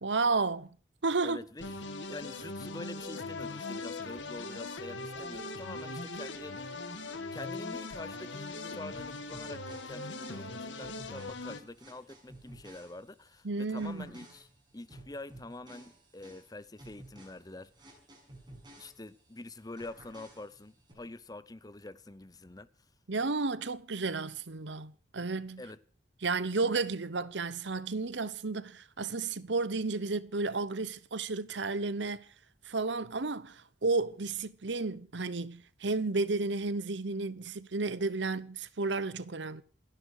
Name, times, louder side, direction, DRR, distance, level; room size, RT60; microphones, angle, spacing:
voice 1, 0.0-0.7 1.0-1.4 13.4-14.1 23.1-25.6 26.2-32.2 32.6-39.6, right 3 dB, 75° right, 1.0 m, -32 dB
voice 2, 1.2-6.7 7.3-14.5 14.7-17.7 18.8-22.7 25.6-25.8, left 2 dB, 20° left, 0.8 m, -46 dB
sound 1, 1.6-11.6, left 3 dB, 85° left, 2.3 m, -40 dB
sound 2, 8.9-13.4 13.8-19.4 19.8-20.9, right 1 dB, 25° right, 6.7 m, -54 dB
28.0 x 11.0 x 4.8 m
head